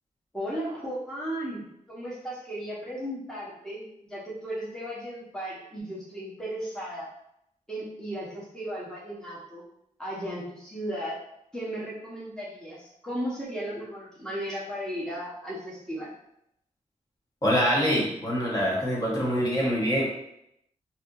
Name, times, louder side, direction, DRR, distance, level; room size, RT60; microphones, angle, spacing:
voice 1, 0.3-7.1 7.7-9.6 10.0-11.2 11.5-16.1, equal, 5° left, -7 dB, 1.0 m, -35 dB
voice 2, 17.4-20.0, equal, 25° left, -5 dB, 1.1 m, -25 dB
3.1 x 2.8 x 2.5 m, 0.78 s
cardioid pair, 70°, 14 cm